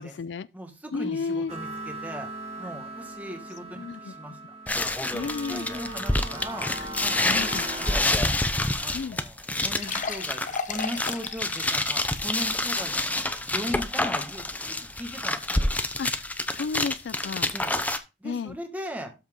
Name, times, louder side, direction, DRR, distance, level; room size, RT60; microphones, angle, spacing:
voice 1, 0.0-0.5 0.9-1.5 3.8-4.1 5.1-5.7 7.3-7.7 8.9-9.2 16.0-16.2 16.5-17.5 18.2-18.5, left 5 dB, 70° left, 0.3 m, -32 dB
voice 2, 0.5-2.3 2.6-4.4 5.5-6.7 7.0-8.4 8.8-10.4 10.7-13.0 13.5-15.4 17.5-17.8 18.2-19.1, equal, 10° right, 1.6 m, -38 dB
sound 1, 1.5-8.0, right 1 dB, 35° right, 2.6 m, -38 dB
sound 2, 4.7-18.0, left 2 dB, 10° left, 0.7 m, -28 dB
sound 3, 9.1-9.2 9.6-13.2 13.7-13.8 14.4-14.5, left 5 dB, 45° left, 0.9 m, -36 dB
12.5 x 4.4 x 3.7 m
head